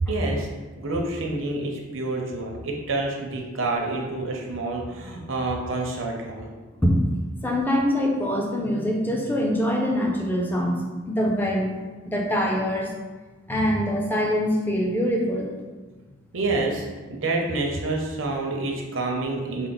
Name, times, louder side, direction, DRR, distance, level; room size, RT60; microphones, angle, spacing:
voice 1, 0.1-0.5 0.8-6.5 16.3-19.7, right 2 dB, 65° right, 0 dB, 0.7 m, -28 dB
voice 2, 7.4-11.8 12.1-12.9 13.5-15.5, equal, 10° left, -1 dB, 0.4 m, -24 dB
4.5 x 2.0 x 3.9 m, 1.3 s
head